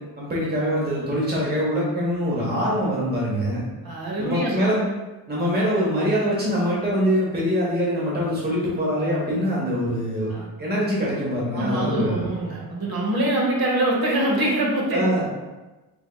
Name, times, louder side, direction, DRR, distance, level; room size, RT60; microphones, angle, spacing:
voice 1, 0.2-3.6 4.2-4.8 5.3-10.3 10.6-12.3 14.9-15.2, equal, 25° right, -5 dB, 0.9 m, -23 dB
voice 2, 3.8-4.6 10.3-10.5 11.5-15.1, right 1 dB, 65° right, -1 dB, 0.9 m, -24 dB
3.6 x 3.4 x 2.2 m, 1.1 s
wide cardioid pair, 135°, 41 cm